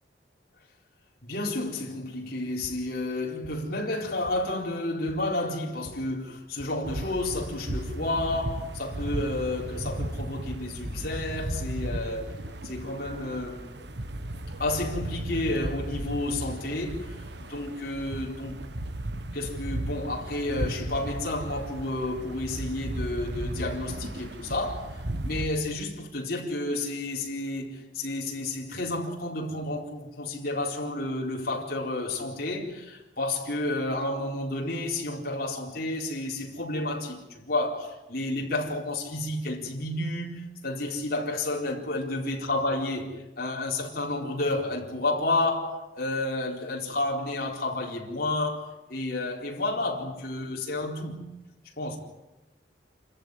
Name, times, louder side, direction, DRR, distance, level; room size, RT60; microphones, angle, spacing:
voice 1, 1.2-12.4 12.6-13.7 14.6-18.6 19.3-51.3 51.8-52.0, left 2 dB, 55° left, 4.3 m, -31 dB
sound 1, 2.6-10.1, equal, 10° right, 4.8 m, -52 dB
sound 2, 6.8-25.5, right 1 dB, 70° right, 1.5 m, -35 dB
28.0 x 14.5 x 9.8 m
head